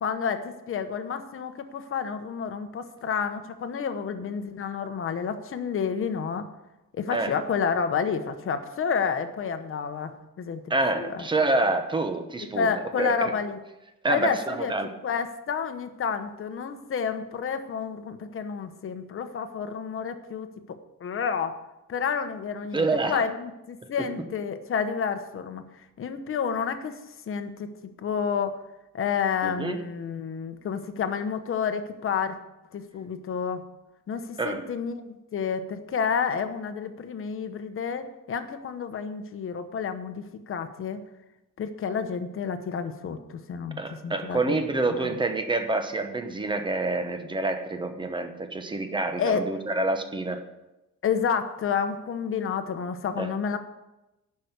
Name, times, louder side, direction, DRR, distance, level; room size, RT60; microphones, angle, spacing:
voice 1, 0.0-6.5 6.9-10.6 10.9-11.2 12.5-13.6 14.1-14.7 15.0-20.5 21.0-21.5 21.9-25.6 26.0-27.0 27.3-27.7 28.0-28.6 28.9-32.4 32.7-33.6 34.1-41.0 41.6-44.6 44.9-45.1 49.2-49.5 51.0-53.6, left 6 dB, 40° left, 8 dB, 1.0 m, -30 dB
voice 2, 10.7-13.3 14.0-14.9 22.7-23.2 29.4-29.8 34.4-34.6 43.8-50.4 53.2-53.3, right 2 dB, 15° right, 7 dB, 1.0 m, -27 dB
11.5 x 5.8 x 8.1 m, 0.97 s
cardioid pair, 160°, 32 cm